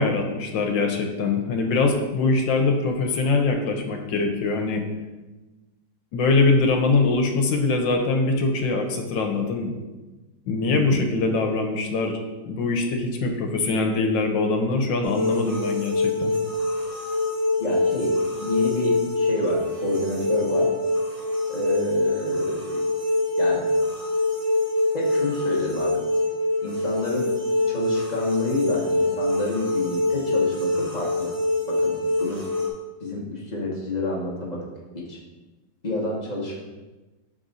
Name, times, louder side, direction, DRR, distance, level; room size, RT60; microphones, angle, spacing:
voice 1, 0.0-4.9 6.1-9.7 10.5-12.2 12.5-16.3, left 3 dB, 80° left, 3 dB, 1.5 m, -23 dB
voice 2, 10.7-11.0 17.6-20.7 21.5-22.8 23.4-23.7 24.9-26.0 26.6-27.3 27.7-31.3 31.7-32.4 33.0-34.6 34.9-35.2 35.8-36.6, left 2 dB, 30° left, -4 dB, 0.9 m, -29 dB
sound 1, 15.0-32.7, left 2 dB, 25° right, 0.9 m, -24 dB
6.1 x 4.1 x 3.9 m, 1.2 s
omnidirectional pair, 2.0 m